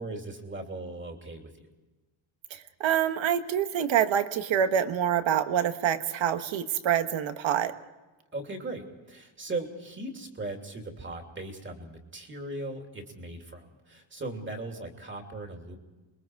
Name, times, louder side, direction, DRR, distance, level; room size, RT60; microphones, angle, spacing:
voice 1, 0.0-1.5 8.3-15.8, right 2 dB, 25° right, 3 dB, 2.9 m, -38 dB
voice 2, 2.5-7.7, right 9 dB, 80° right, 9 dB, 1.4 m, -26 dB
27.0 x 22.0 x 4.7 m, 1.2 s
wide cardioid pair, 160°, 45 cm